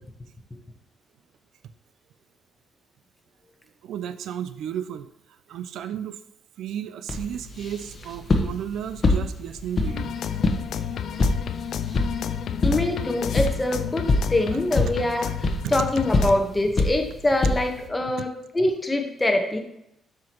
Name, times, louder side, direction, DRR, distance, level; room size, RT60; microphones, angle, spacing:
voice 1, 3.8-6.2 6.6-10.2 10.7-11.3 12.6-12.7 15.6-15.9, right 9 dB, 75° right, 12 dB, 0.3 m, -34 dB
sound 1, 7.1-17.9, left 2 dB, 40° left, 1.0 m, -27 dB
sound 2, 9.8-16.4, left 9 dB, 70° left, 0.4 m, -31 dB
voice 2, 12.6-15.3 15.7-19.6, left 1 dB, 15° left, 4 dB, 1.1 m, -24 dB
7.5 x 5.9 x 3.0 m, 0.79 s
cardioid pair, 90°, 0 cm